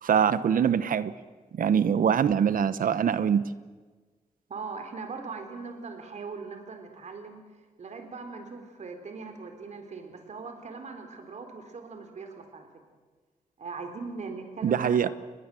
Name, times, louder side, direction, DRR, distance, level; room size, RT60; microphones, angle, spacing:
voice 1, 0.0-1.1 1.5-3.5 14.6-15.1, right 8 dB, 80° right, 14 dB, 1.1 m, -23 dB
voice 2, 4.5-7.4 7.8-12.7 13.6-15.1, right 4 dB, 55° right, 6 dB, 3.9 m, -40 dB
30.0 x 21.5 x 7.7 m, 1.4 s
wide cardioid pair, 160°, 14 cm